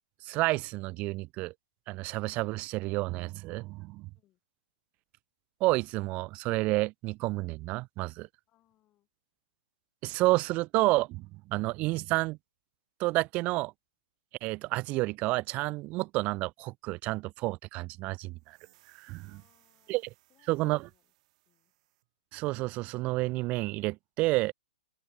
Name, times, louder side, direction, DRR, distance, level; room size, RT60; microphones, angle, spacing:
voice 1, 0.2-1.5 1.9-4.1 5.6-8.3 10.0-12.4 13.0-13.7 14.4-18.6 19.0-19.3 19.9-20.0 20.5-20.9 22.3-24.5, right 21 dB, 30° right, 0.4 m, -30 dB
voice 2, 8.5-9.1 19.2-20.0 20.3-21.1 21.5-21.7, left 15 dB, 25° left, 7.4 m, -71 dB
sound 1, 18.4-22.1, right 18 dB, 45° right, 6.5 m, -66 dB
open air
hypercardioid pair, 135°, 5 cm